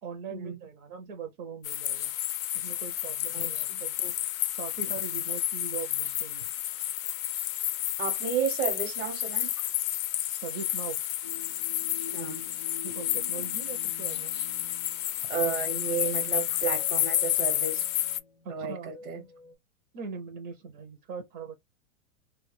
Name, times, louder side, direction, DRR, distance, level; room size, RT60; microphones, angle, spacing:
voice 1, 0.0-2.1 2.5-4.2 4.5-6.5 10.4-11.0 12.8-14.3 18.4-18.9 19.9-21.6, right 6 dB, 30° right, 0.5 m, -40 dB
sound 1, 1.6-18.2, left 13 dB, 70° left, 0.5 m, -31 dB
voice 2, 3.3-3.8 8.0-9.5 12.1-12.5 15.3-17.9 18.5-19.2, right 6 dB, 75° right, 1.0 m, -32 dB
sound 2, 11.2-19.5, left 4 dB, 20° left, 0.5 m, -48 dB
2.2 x 2.1 x 3.1 m
hypercardioid pair, 140°, 42 cm